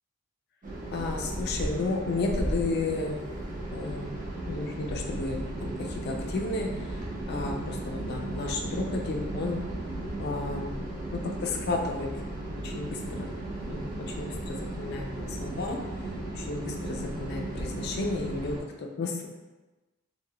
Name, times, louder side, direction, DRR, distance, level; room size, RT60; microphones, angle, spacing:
sound 1, 0.6-18.6, right 1 dB, 35° right, 0.5 m, -35 dB
voice 1, 0.9-3.4 3.7-4.1 4.5-7.0 7.3-9.6 10.2-10.7 11.1-12.1 12.6-13.3 13.7-15.8 16.3-19.3, left 3 dB, 50° left, 2 dB, 0.3 m, -33 dB
2.2 x 2.1 x 3.5 m, 1.2 s
head